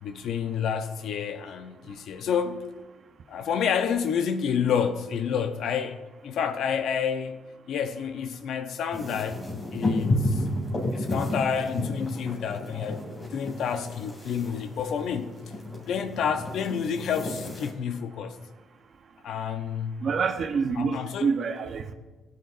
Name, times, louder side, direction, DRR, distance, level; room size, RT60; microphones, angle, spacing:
voice 1, 0.0-2.7 3.3-7.4 7.7-9.4 9.7-10.4 10.9-15.4 15.9-18.4 19.2-20.1 20.8-21.3, left 7 dB, 75° left, 0.8 m, -29 dB
sound 1, 8.9-17.7, left 1 dB, 35° left, 2.8 m, -31 dB
voice 2, 20.0-21.9, right 5 dB, 55° right, 0.9 m, -27 dB
16.5 x 9.6 x 2.6 m
cardioid pair, 90°, 0 cm